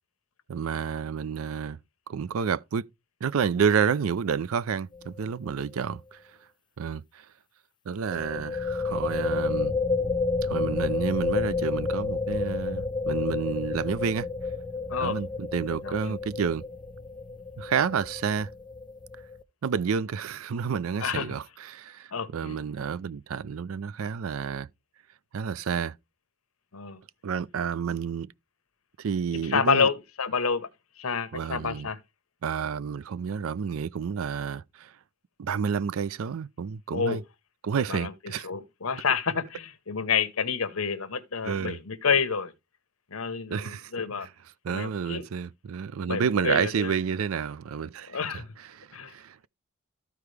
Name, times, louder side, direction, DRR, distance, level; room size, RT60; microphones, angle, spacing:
voice 1, 0.5-1.8 2.1-2.8 3.2-6.2 6.8-7.3 7.9-9.7 10.4-14.3 15.0-16.6 17.6-18.5 19.6-24.7 25.3-25.9 27.2-28.3 29.0-29.9 31.3-31.9 32.4-34.9 35.4-37.2 37.6-38.5 41.4-41.8 43.5-43.9 44.6-48.4 48.7-49.5, right 6 dB, 70° right, 0.4 m, -30 dB
sound 1, 4.9-5.2 5.5-5.6 8.0-19.4, left 3 dB, 20° left, 0.4 m, -30 dB
voice 2, 15.7-16.2 21.0-21.3 22.1-22.6 26.7-27.0 29.4-30.7 31.0-32.0 36.9-37.2 37.9-42.5 43.1-44.3 44.7-45.3 46.1-47.0 48.1-48.5 48.9-49.1, left 5 dB, 75° left, 1.0 m, -29 dB
14.0 x 4.8 x 3.3 m
head